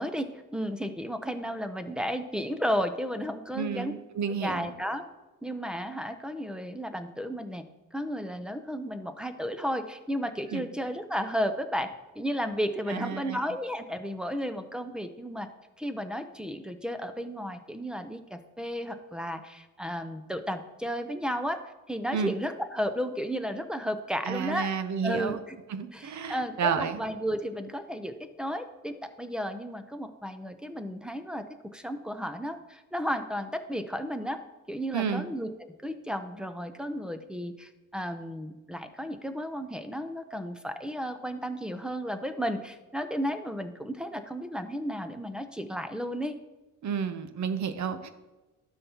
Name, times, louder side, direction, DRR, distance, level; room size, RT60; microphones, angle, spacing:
voice 1, 0.0-4.0 4.4-5.0 5.4-7.6 7.9-11.9 12.2-15.5 15.8-21.6 21.9-24.7 25.0-25.6 25.9-31.4 31.7-34.4 34.7-46.3, equal, ahead, 8 dB, 0.7 m, -33 dB
voice 2, 3.6-4.7 10.5-10.7 12.9-13.4 22.1-22.3 24.2-25.4 25.7-27.0 34.9-35.3 46.8-48.1, right 6 dB, 55° right, 11 dB, 0.8 m, -31 dB
12.0 x 5.7 x 2.9 m, 1.1 s
cardioid pair, 95°, 35 cm